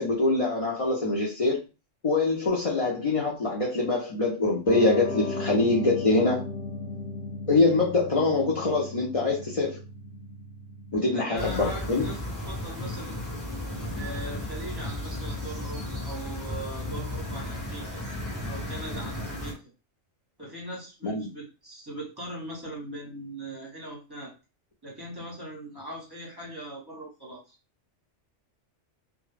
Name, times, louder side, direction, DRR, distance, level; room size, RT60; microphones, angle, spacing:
voice 1, 0.0-1.6 2.0-6.4 7.5-9.8 10.9-12.1 21.0-21.3, left 3 dB, 45° left, -3 dB, 0.4 m, -24 dB
Piano, 4.7-11.2, left 3 dB, 75° left, 0.9 m, -36 dB
voice 2, 11.1-13.2 13.9-18.0 18.4-19.5 20.4-24.3 24.8-27.6, right 1 dB, 20° right, -4 dB, 1.0 m, -40 dB
sound 1, 11.4-19.5, left 1 dB, 15° left, 1.1 m, -34 dB
2.2 x 2.1 x 3.2 m, 0.30 s
omnidirectional pair, 1.2 m